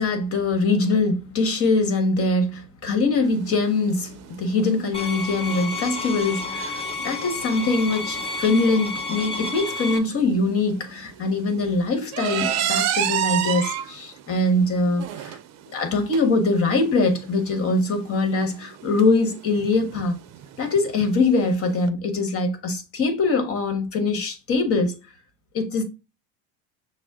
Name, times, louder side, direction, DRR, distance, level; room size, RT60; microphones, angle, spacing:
voice 1, 0.0-15.4 15.7-20.2 20.6-24.9 25.5-25.8, left 3 dB, 40° left, 1.3 m, -23 dB
sound 1, 3.2-21.9, right 10 dB, 50° right, 0.6 m, -32 dB
sound 2, 4.9-10.0, left 3 dB, 15° left, 0.8 m, -31 dB
6.1 x 2.1 x 3.5 m
supercardioid pair, 115°, 36 cm